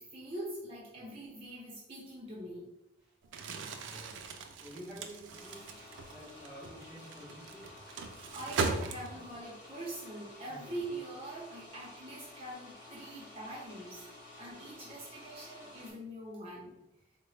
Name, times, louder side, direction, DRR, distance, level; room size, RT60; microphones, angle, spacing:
voice 1, 0.0-2.7 8.3-14.1 14.4-16.8, right 1 dB, 30° right, -6 dB, 0.7 m, -43 dB
Crumpling crinkling, 3.2-9.4, right 4 dB, 80° right, 0.4 m, -39 dB
voice 2, 3.8-4.2 4.6-5.8 6.1-7.8 10.5-10.8 14.8-15.0, equal, 5° right, -8 dB, 0.8 m, -50 dB
sound 1, 5.3-15.9, left 2 dB, 55° left, 1.5 m, -52 dB
3.7 x 2.1 x 3.2 m, 0.87 s
head